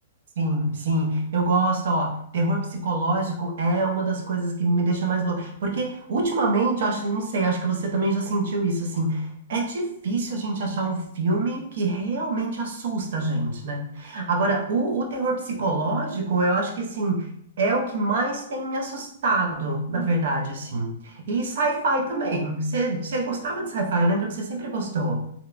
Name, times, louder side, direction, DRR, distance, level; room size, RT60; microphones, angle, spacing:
voice 1, 0.4-17.3 17.6-25.2, right 2 dB, 65° right, 2 dB, 0.6 m, -25 dB
2.8 x 2.1 x 2.4 m, 0.67 s
hypercardioid pair, 135°, 0 cm